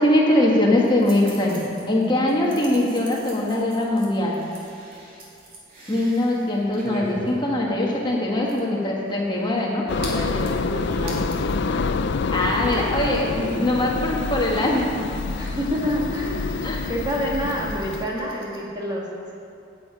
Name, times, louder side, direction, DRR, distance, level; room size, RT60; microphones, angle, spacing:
voice 1, 0.0-4.4 5.9-9.8 12.3-14.9 16.6-16.9, left 1 dB, 25° left, -3 dB, 1.5 m, -22 dB
sound 1, 0.7-11.6 11.9-12.0 12.2-18.6, right 1 dB, 45° right, 2.8 m, -43 dB
voice 2, 1.6-2.7 9.8-11.8 13.5-13.9 15.4-19.0, equal, 20° right, -4 dB, 2.0 m, -29 dB
sound 2, 9.9-18.1, left 4 dB, 60° left, 0.5 m, -27 dB
9.8 x 8.3 x 8.6 m, 2.6 s
head